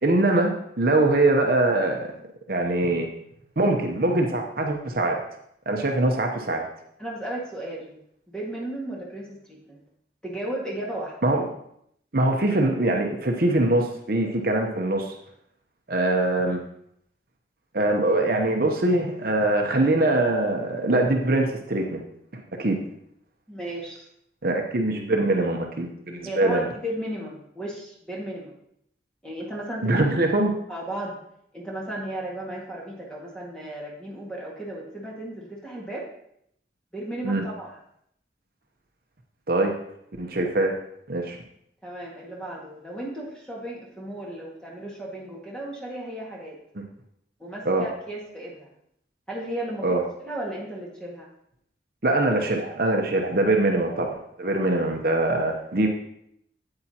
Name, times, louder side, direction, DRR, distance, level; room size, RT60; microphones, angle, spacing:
voice 1, 0.0-2.1 2.5-3.1 3.6-5.2 5.7-6.6 11.2-11.5 12.1-15.1 15.9-16.6 17.7-22.0 22.3-22.8 24.4-26.7 29.8-30.5 37.2-37.5 39.5-39.7 40.2-40.8 41.1-41.4 47.6-47.8 49.8-50.0 52.0-55.9, right 2 dB, 55° right, 2 dB, 0.8 m, -23 dB
voice 2, 7.0-8.0 8.3-9.8 10.2-11.1 23.5-24.1 26.2-28.5 29.2-30.1 30.7-31.2 31.5-36.1 36.9-37.7 41.8-46.6 47.4-48.7 49.3-51.3, right 1 dB, 5° left, -4 dB, 1.8 m, -35 dB
8.8 x 8.5 x 2.9 m, 0.73 s
head